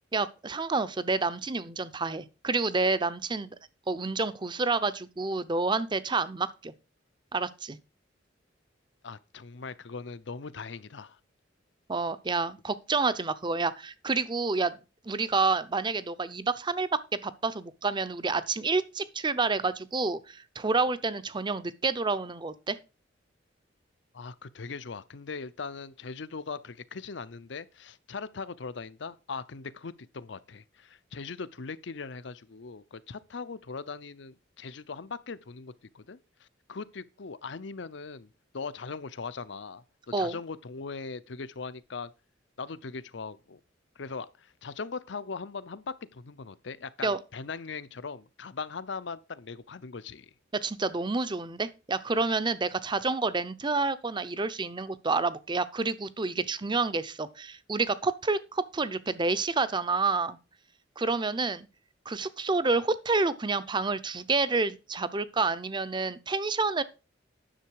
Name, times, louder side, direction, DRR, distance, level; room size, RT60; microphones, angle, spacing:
voice 1, 0.1-3.6 3.9-6.7 7.3-7.8 11.9-14.7 15.0-16.9 17.2-22.8 40.1-40.4 47.0-47.2 50.6-60.4 61.0-61.7 62.1-66.8, right 3 dB, 25° right, 0.6 m, -29 dB
voice 2, 9.0-11.2 24.1-39.8 40.2-42.1 42.6-43.6 44.0-50.3, left 4 dB, 65° left, 0.6 m, -40 dB
10.5 x 6.8 x 4.7 m
head